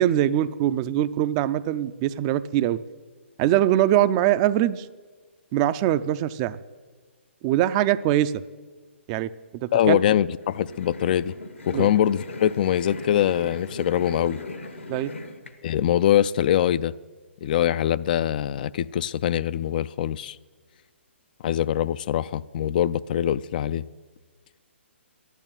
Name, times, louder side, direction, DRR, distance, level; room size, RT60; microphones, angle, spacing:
voice 1, 0.0-2.8 3.4-4.9 5.5-6.6 7.4-8.3 9.1-10.0 11.7-11.9 14.9-15.1, right 12 dB, 30° right, 14 dB, 0.5 m, -22 dB
voice 2, 9.7-11.4 11.7-14.4 15.6-16.9 17.4-20.4 21.4-23.8, left 10 dB, 45° left, 16 dB, 0.4 m, -23 dB
sound 1, 10.4-15.5, left 2 dB, 80° left, 1.5 m, -38 dB
12.0 x 11.0 x 9.0 m, 1.4 s
figure-of-eight pair, 135°, 7 cm